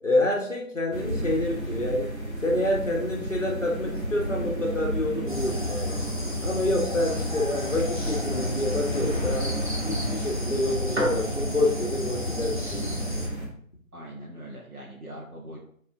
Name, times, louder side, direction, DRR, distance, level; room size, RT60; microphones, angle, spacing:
voice 1, 0.0-2.1 2.4-6.0 6.4-9.5 9.8-13.3, left 1 dB, 60° left, -1 dB, 1.4 m, -27 dB
sound 1, 0.9-13.5, right 1 dB, 50° right, 2.5 m, -32 dB
sound 2, 5.3-13.3, left 2 dB, 35° right, 1.1 m, -33 dB
voice 2, 13.9-15.6, right 1 dB, 80° right, -3 dB, 1.6 m, -41 dB
6.2 x 4.2 x 3.6 m, 0.62 s
figure-of-eight pair, 175°, 43 cm